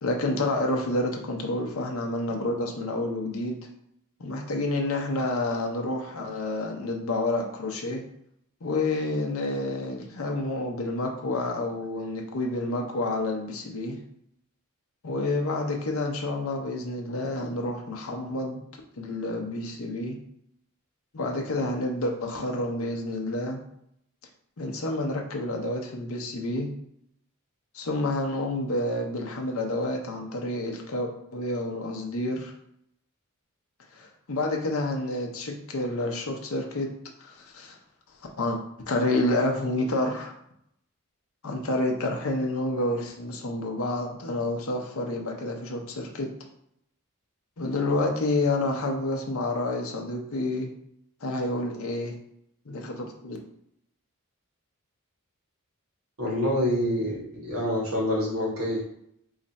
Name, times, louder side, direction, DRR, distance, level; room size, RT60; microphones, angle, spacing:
voice 1, 0.0-3.6 4.2-8.0 8.6-14.0 15.0-18.6 19.0-20.2 21.1-23.6 24.6-26.7 27.7-32.5 33.9-36.9 37.2-37.8 38.4-38.6 38.9-40.3 41.4-46.3 47.6-50.7 51.2-52.1 52.7-53.4, left 2 dB, 65° left, 1 dB, 0.6 m, -29 dB
voice 2, 56.2-58.8, left 1 dB, 75° right, -5 dB, 1.3 m, -26 dB
3.2 x 2.5 x 4.0 m, 0.73 s
head